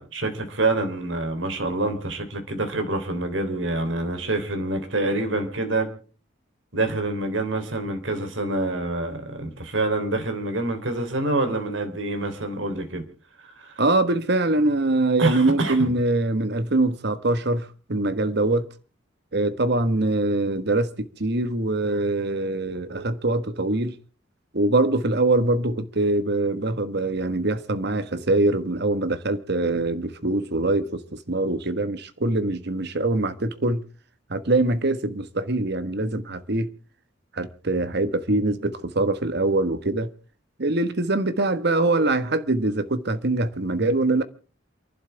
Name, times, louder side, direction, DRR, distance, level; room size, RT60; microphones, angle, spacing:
voice 1, 0.0-5.9 6.7-13.0 13.6-13.7 15.2-15.9, right 2 dB, 80° right, 3.4 m, -26 dB
voice 2, 13.8-18.7 19.3-23.9 24.5-33.8 34.3-36.7 37.3-40.1 40.6-44.2, right 2 dB, 60° right, 1.4 m, -23 dB
28.5 x 11.5 x 3.4 m
head